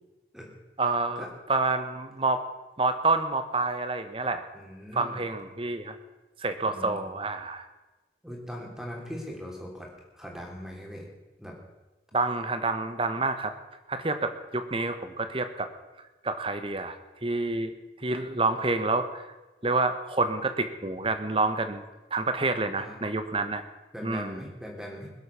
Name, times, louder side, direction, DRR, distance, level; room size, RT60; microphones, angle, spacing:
voice 1, 0.8-2.4 2.8-4.4 4.9-6.0 6.4-7.7 12.1-13.5 13.9-15.7 16.2-17.7 18.0-19.3 19.6-21.8 22.1-23.6 24.0-24.5, right 3 dB, 30° right, 9 dB, 1.2 m, -28 dB
voice 2, 4.5-5.2 6.6-7.0 8.2-11.1 11.4-11.5 22.8-23.0 23.9-25.1, equal, 5° right, -1 dB, 3.1 m, -40 dB
21.5 x 8.0 x 7.0 m, 1.1 s
head